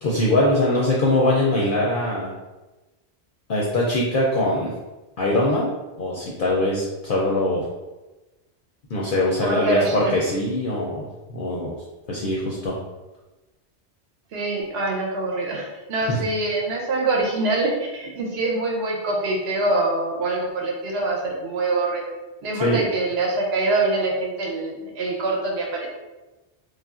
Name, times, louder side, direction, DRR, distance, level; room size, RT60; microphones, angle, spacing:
voice 1, 0.0-2.3 3.5-4.7 5.2-7.6 8.9-11.7 12.1-12.7 16.1-16.2 22.5-22.8, left 1 dB, 60° left, -4 dB, 0.6 m, -22 dB
voice 2, 9.4-10.1 14.3-22.1 22.4-25.9, right 2 dB, 65° right, -1 dB, 0.9 m, -24 dB
3.2 x 2.4 x 2.3 m, 1.1 s
omnidirectional pair, 1.2 m